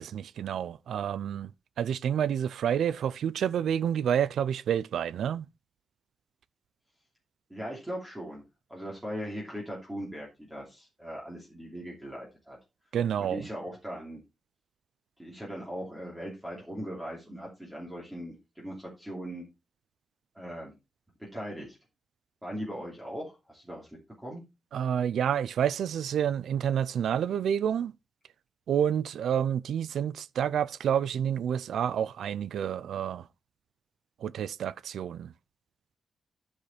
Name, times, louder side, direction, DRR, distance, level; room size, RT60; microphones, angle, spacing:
voice 1, 0.0-1.5 1.8-5.5 12.9-13.5 24.7-27.9 28.7-33.3 34.2-35.3, right 9 dB, 90° right, 0.4 m, -29 dB
voice 2, 7.5-8.4 8.7-12.6 13.2-14.2 15.2-19.4 20.3-20.7 21.2-21.8 22.4-23.9 24.2-24.4, equal, 5° right, 2.8 m, -39 dB
12.5 x 5.0 x 4.3 m
wide cardioid pair, 160°, 0 cm